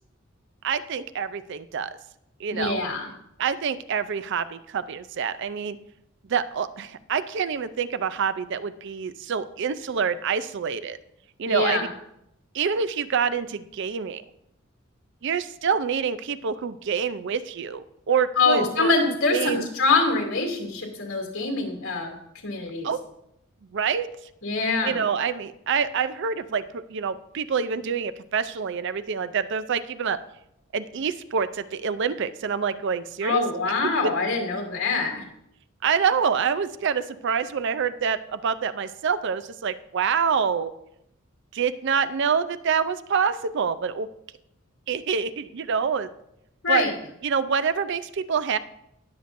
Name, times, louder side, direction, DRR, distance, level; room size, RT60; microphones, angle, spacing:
voice 1, 0.6-1.9 2.4-2.8 3.4-5.8 6.3-11.0 11.4-11.9 12.5-14.2 15.2-19.7 22.8-23.0 23.7-24.1 24.8-30.2 30.7-33.4 34.0-34.1 35.8-40.7 41.5-44.1 44.9-46.1 46.7-46.8 47.2-48.6, right 6 dB, 55° right, 12 dB, 0.4 m, -26 dB
voice 2, 2.5-3.1 11.5-11.9 18.4-22.1 22.4-22.9 24.4-25.0 33.2-35.2 46.6-46.9, left 4 dB, 80° left, 1 dB, 2.6 m, -24 dB
19.0 x 6.8 x 2.6 m, 0.79 s
head